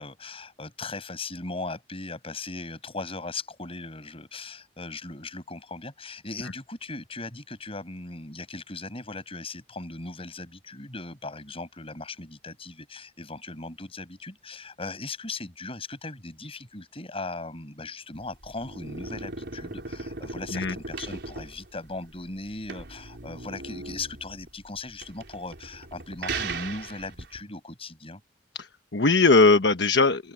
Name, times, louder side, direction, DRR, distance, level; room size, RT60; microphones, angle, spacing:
voice 1, 0.0-28.2, left 3 dB, 35° left, 6.3 m, -38 dB
sound 1, 18.1-27.4, right 3 dB, 80° right, 4.3 m, -38 dB
voice 2, 28.5-30.3, left 3 dB, 85° left, 1.2 m, -20 dB
open air
head